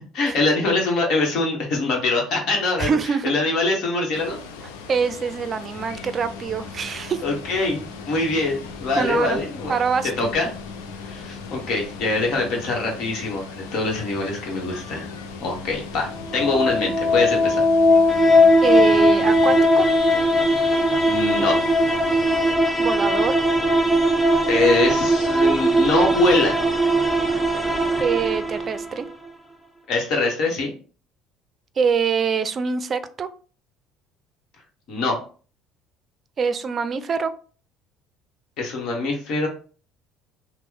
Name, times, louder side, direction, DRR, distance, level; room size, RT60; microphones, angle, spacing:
voice 1, 0.1-4.4 7.2-9.7 10.0-10.5 11.0-15.1 15.4-17.6 21.1-21.6 24.5-26.6 29.9-30.7 34.9-35.2 38.6-39.5, left 2 dB, 65° left, 0 dB, 1.1 m, -23 dB
voice 2, 2.8-3.3 4.9-7.2 9.0-9.4 9.7-10.3 18.6-19.9 22.8-23.4 28.0-29.1 31.8-33.3 36.4-37.3, right 6 dB, 40° right, 13 dB, 0.4 m, -24 dB
Water, 4.1-22.6, left 5 dB, 90° left, 0.4 m, -40 dB
sound 1, 5.7-19.6, left 4 dB, 25° left, 1.1 m, -41 dB
sound 2, 16.1-29.1, equal, 5° left, 0.6 m, -19 dB
3.0 x 2.1 x 3.7 m, 0.39 s
supercardioid pair, 80°, 0 cm